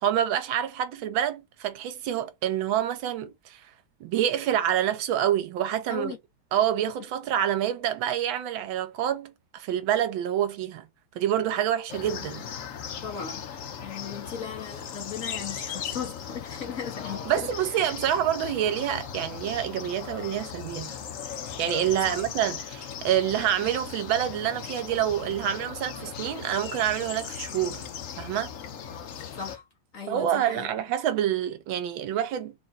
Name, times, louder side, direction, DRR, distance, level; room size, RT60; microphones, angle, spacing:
voice 1, 0.0-3.6 4.0-6.1 6.5-10.9 11.1-12.5 17.3-21.0 21.6-27.8 28.2-28.5 30.1-32.5, right 10 dB, 80° right, 1.4 m, -27 dB
sound 1, 11.9-29.6, left 8 dB, 75° left, 0.7 m, -38 dB
voice 2, 13.0-13.4 13.8-17.8 22.0-22.2 29.3-29.7 29.9-30.7, left 6 dB, 50° left, 1.1 m, -37 dB
3.7 x 2.5 x 3.9 m
omnidirectional pair, 2.2 m